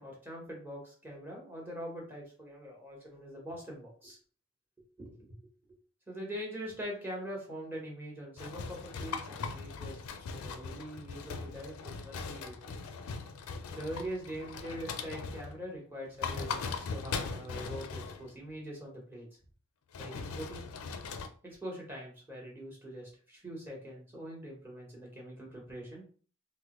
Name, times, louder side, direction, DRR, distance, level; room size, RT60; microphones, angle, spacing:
voice 1, 0.0-4.2 5.0-5.4 6.1-10.0 10.3-12.7 13.7-19.3 20.0-20.7 21.4-26.1, equal, 10° right, -3 dB, 1.0 m, -43 dB
sound 1, 8.4-15.6 16.1-18.4 19.9-21.3, left 5 dB, 80° left, 0.4 m, -40 dB
3.3 x 2.1 x 3.0 m, 0.42 s
head